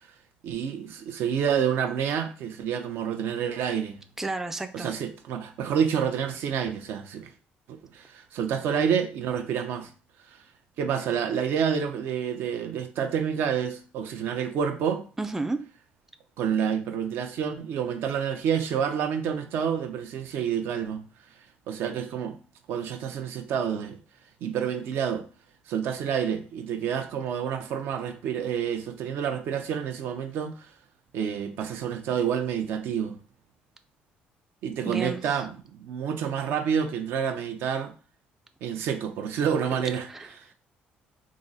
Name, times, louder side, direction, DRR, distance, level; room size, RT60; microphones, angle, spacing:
voice 1, 0.4-4.0 4.7-7.3 7.7-9.9 10.3-10.4 10.8-15.0 16.4-21.0 21.7-22.4 22.7-24.0 24.4-25.3 25.7-30.7 31.1-33.2 34.6-37.9 38.6-40.1, right 8 dB, 75° right, 0.6 m, -28 dB
voice 2, 4.2-4.9 15.2-15.6 34.8-35.4 40.1-40.3, right 2 dB, 10° right, 0.3 m, -31 dB
3.7 x 2.0 x 3.9 m
cardioid pair, 105°, 4 cm